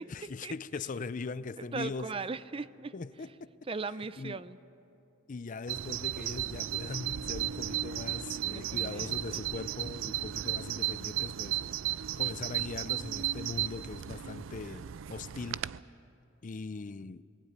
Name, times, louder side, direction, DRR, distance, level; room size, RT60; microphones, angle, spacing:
voice 1, 0.0-2.1 2.9-3.5 4.2-4.4 5.3-11.6 12.2-15.6 16.4-17.2, left 4 dB, 40° left, 17 dB, 0.5 m, -40 dB
voice 2, 1.6-2.9 3.7-4.6 8.4-9.4, right 4 dB, 30° right, 16 dB, 0.5 m, -38 dB
Bird vocalization bird call bird song, 5.7-15.8, right 12 dB, 80° right, 0.4 m, -35 dB
20.0 x 16.5 x 9.6 m, 2.7 s
head